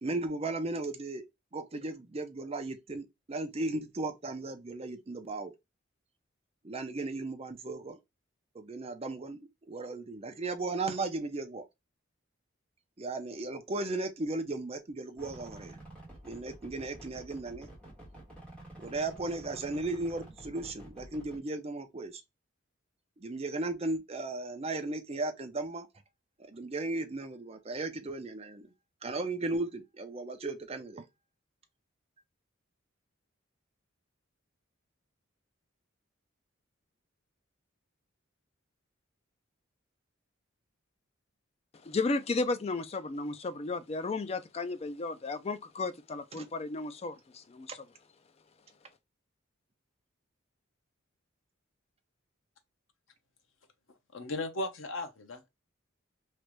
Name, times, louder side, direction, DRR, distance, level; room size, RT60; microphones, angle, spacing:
voice 1, 0.0-1.2 1.5-5.5 6.6-8.0 8.5-9.4 9.7-11.6 13.0-15.8 16.2-17.7 18.8-22.2 23.2-25.9 26.5-28.7 29.0-31.1 46.3-46.5, right 2 dB, 30° right, 0.5 m, -36 dB
sound 1, 15.2-21.4, right 1 dB, 5° left, 1.3 m, -50 dB
voice 2, 41.8-47.8, left 3 dB, 30° left, 0.4 m, -34 dB
voice 3, 54.1-55.5, left 2 dB, 75° left, 0.8 m, -36 dB
3.2 x 2.5 x 3.1 m
head